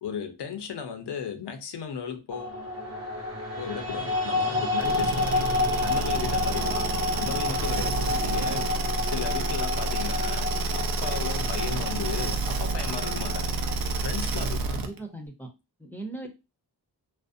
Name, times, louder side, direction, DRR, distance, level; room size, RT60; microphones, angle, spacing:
voice 1, 0.0-2.6 3.6-5.5 5.8-8.7 9.0-13.6 14.0-14.9, left 7 dB, 85° left, 0.6 m, -36 dB
sound 1, 2.3-14.5, left 2 dB, 35° right, 0.9 m, -30 dB
sound 2, 4.8-15.0, right 3 dB, 60° right, 0.5 m, -29 dB
voice 2, 14.7-15.5 15.8-16.3, right 2 dB, 5° left, 0.6 m, -38 dB
2.5 x 2.0 x 2.5 m
wide cardioid pair, 75°, 40 cm